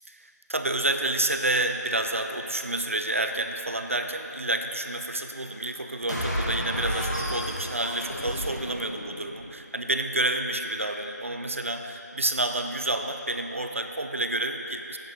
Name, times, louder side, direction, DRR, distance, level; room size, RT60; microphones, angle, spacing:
voice 1, 0.1-15.0, right 2 dB, 50° right, 6 dB, 0.5 m, -29 dB
sound 1, 6.1-9.5, equal, 80° left, 1.7 m, -31 dB
8.4 x 7.5 x 3.5 m, 2.9 s
figure-of-eight pair, 170°, 9 cm